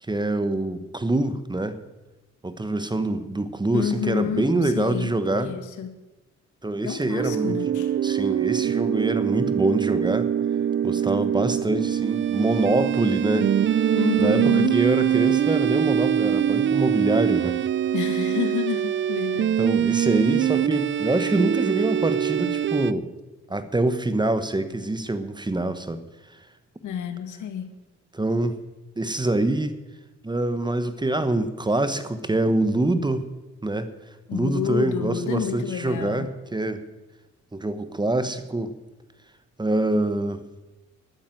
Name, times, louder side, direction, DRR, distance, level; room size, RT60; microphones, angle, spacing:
voice 1, 0.1-1.8 2.4-5.5 6.6-7.6 8.0-10.3 10.8-13.9 14.2-17.6 19.6-23.1 23.5-26.0 28.1-28.6 29.0-29.8 30.2-33.3 33.6-33.9 34.3-36.8 37.5-38.7 39.6-40.4, right 2 dB, 15° right, 11 dB, 1.1 m, -25 dB
voice 2, 3.7-6.0 6.8-7.9 13.9-14.8 17.9-19.6 26.8-27.7 34.3-36.3, left 8 dB, 75° left, 9 dB, 1.6 m, -29 dB
sound 1, 7.2-22.9, right 9 dB, 40° right, 0.5 m, -23 dB
11.5 x 9.2 x 9.2 m, 1.1 s
cardioid pair, 90°, 30 cm